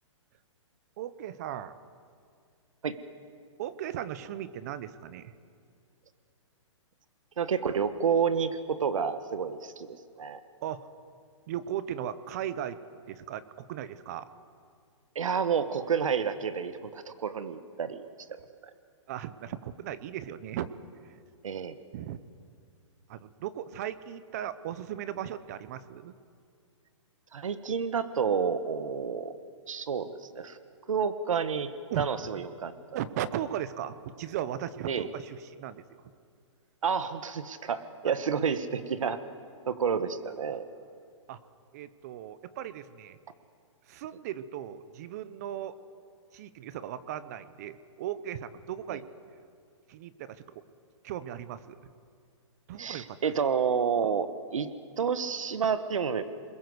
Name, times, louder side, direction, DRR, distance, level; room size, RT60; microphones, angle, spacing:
voice 1, 1.0-1.8 3.6-5.3 10.6-10.9 11.5-12.8 13.1-14.3 19.1-20.7 21.9-22.2 23.1-26.1 31.9-32.1 32.9-35.8 38.0-38.1 41.3-41.4 41.7-43.2 43.9-45.7 46.3-49.0 49.9-50.4 51.0-51.8 52.7-53.2, right 10 dB, 30° right, 15 dB, 0.9 m, -37 dB
voice 2, 7.4-10.4 15.1-18.0 21.4-21.8 27.3-29.3 29.7-30.1 30.3-30.6 30.9-31.7 32.0-32.7 34.9-35.0 36.8-39.2 39.7-40.7 48.9-49.0 52.8-54.7 55.0-56.2, right 6 dB, 85° right, 11 dB, 1.5 m, -29 dB
29.0 x 21.0 x 8.0 m, 2.2 s
hypercardioid pair, 165°, 16 cm